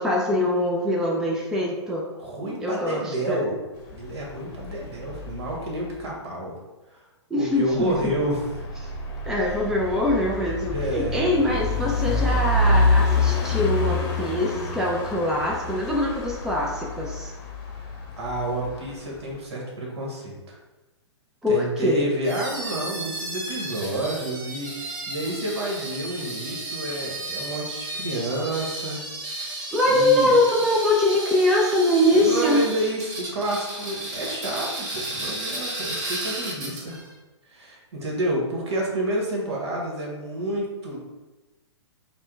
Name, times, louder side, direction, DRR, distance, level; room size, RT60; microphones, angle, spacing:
voice 1, 0.0-2.0 2.6-3.4 7.3-8.1 9.2-17.3 21.4-22.0 29.7-32.6, left 1 dB, 5° right, -2 dB, 0.4 m, -23 dB
voice 2, 2.2-3.6 3.9-6.6 6.9-7.0 7.4-8.5 9.4-9.6 10.7-11.1 18.2-20.6 21.5-29.0 29.3-29.6 29.9-30.3 32.1-37.0 37.5-41.0, right 1 dB, 65° right, -2 dB, 1.4 m, -29 dB
sound 1, 3.8-6.0 7.6-19.4, left 2 dB, 35° left, 0.8 m, -27 dB
sound 2, 22.2-37.1, right 1 dB, 40° right, 1.0 m, -33 dB
4.2 x 2.2 x 3.7 m, 1.1 s
figure-of-eight pair, 120°, 15 cm